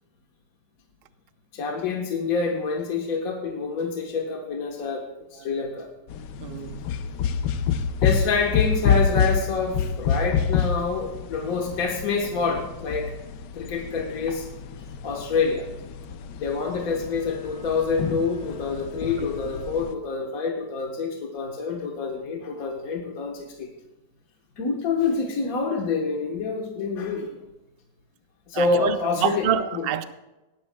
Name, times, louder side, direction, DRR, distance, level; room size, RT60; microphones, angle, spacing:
voice 1, 1.5-5.9 8.0-13.1 13.5-14.5 15.0-15.7 16.4-23.7 24.6-27.3 28.5-29.9, left 4 dB, 55° left, 1.6 m, -27 dB
sound 1, 6.1-19.9, left 7 dB, 85° left, 1.3 m, -28 dB
voice 2, 6.4-6.8 19.2-19.3 28.5-30.0, right 8 dB, 65° right, 0.6 m, -27 dB
18.5 x 13.0 x 2.2 m
omnidirectional pair, 1.8 m